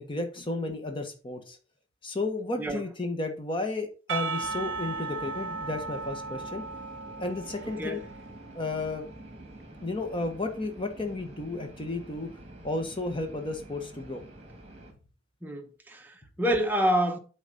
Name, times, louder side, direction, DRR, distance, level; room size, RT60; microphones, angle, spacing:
voice 1, 0.0-1.6 2.0-6.6 7.2-8.0 8.5-9.1 9.8-12.3 12.6-14.2, left 2 dB, 25° left, 1.3 m, -33 dB
Percussion / Church bell, 4.1-9.1, right 4 dB, 70° right, 0.8 m, -36 dB
sound 1, 4.4-14.9, right 1 dB, 30° right, 2.1 m, -47 dB
voice 2, 7.6-8.0 15.4-17.2, equal, 10° right, 1.0 m, -28 dB
8.1 x 4.1 x 5.4 m
head